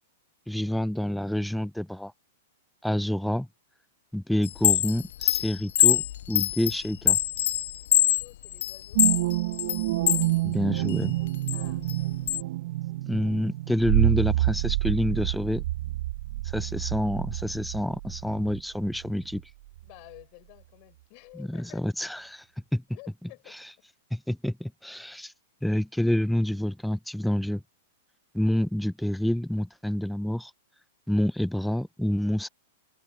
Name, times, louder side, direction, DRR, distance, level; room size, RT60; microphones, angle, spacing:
voice 1, 0.5-2.1 2.8-3.5 4.1-7.2 10.4-11.2 13.1-15.6 16.5-19.4 21.3-22.4 22.7-22.8 23.2-23.3 24.1-25.3 25.6-27.6 28.3-30.5 31.1-32.5, left 1 dB, ahead, 0.8 m, -28 dB
Chime, 4.4-10.3 10.7-12.4, left 12 dB, 65° left, 0.4 m, -24 dB
voice 2, 7.9-9.0 11.5-11.9 19.9-22.1 22.9-23.6, left 36 dB, 45° left, 4.8 m, -51 dB
sound 1, 8.9-19.4 19.8-19.9, right 16 dB, 60° right, 1.4 m, -28 dB
hypercardioid pair, 115°, 0 cm